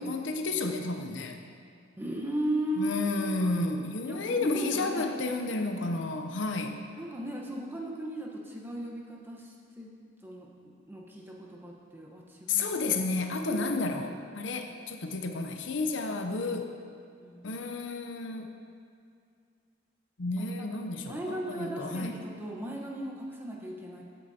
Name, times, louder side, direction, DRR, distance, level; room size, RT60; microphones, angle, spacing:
voice 1, 0.0-1.4 2.8-6.8 12.5-16.7 17.4-18.5 20.2-22.1, left 3 dB, 70° left, 5 dB, 0.7 m, -31 dB
voice 2, 2.0-3.2 4.0-5.0 5.6-5.7 7.0-9.9 10.2-10.5 10.9-12.7 13.4-13.8 17.2-17.6 20.6-20.7 21.1-24.0, right 1 dB, 10° right, -2 dB, 1.0 m, -36 dB
14.5 x 8.4 x 2.8 m, 2.3 s
head